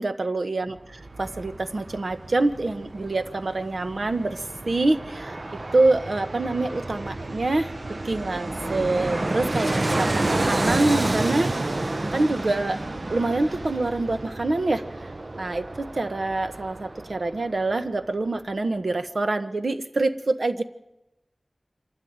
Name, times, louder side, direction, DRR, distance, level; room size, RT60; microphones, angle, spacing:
voice 1, 0.0-5.4 5.7-7.7 8.0-11.8 12.1-12.8 13.1-15.1 15.4-20.6, right 2 dB, 85° right, 8 dB, 1.1 m, -26 dB
Fixed-wing aircraft airplane, 0.8-17.7 18.0-18.1, right 2 dB, 60° right, 0.7 m, -30 dB
25.5 x 12.5 x 9.5 m, 0.95 s
wide cardioid pair, 50°, 0 cm